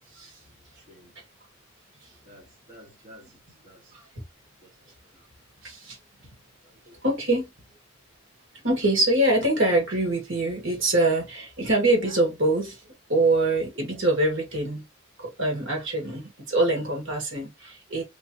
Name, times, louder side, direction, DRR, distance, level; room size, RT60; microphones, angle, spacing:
voice 1, 0.6-1.1 2.2-4.0 4.6-4.9 5.1-5.2 6.2-6.3 6.6-7.0, equal, 35° right, 1.1 m, -52 dB
voice 2, 3.9-4.2 5.6-6.0 7.0-7.5 8.6-12.8 13.1-14.8 15.2-18.0, right 2 dB, 55° right, 1.8 m, -24 dB
3.5 x 3.2 x 2.8 m
head